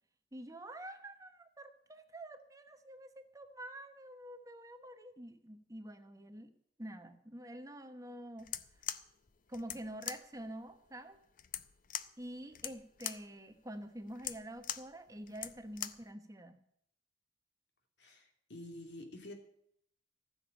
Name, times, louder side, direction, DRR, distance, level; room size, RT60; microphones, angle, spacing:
voice 1, 0.3-6.5 6.8-8.5 9.5-11.2 12.2-16.6, right 1 dB, 20° right, 8 dB, 1.0 m, -47 dB
sound 1, 8.4-16.1, left 10 dB, 45° left, 0.6 m, -43 dB
voice 2, 18.0-19.3, left 1 dB, 70° left, 4 dB, 2.8 m, -49 dB
15.0 x 7.1 x 8.7 m, 0.71 s
head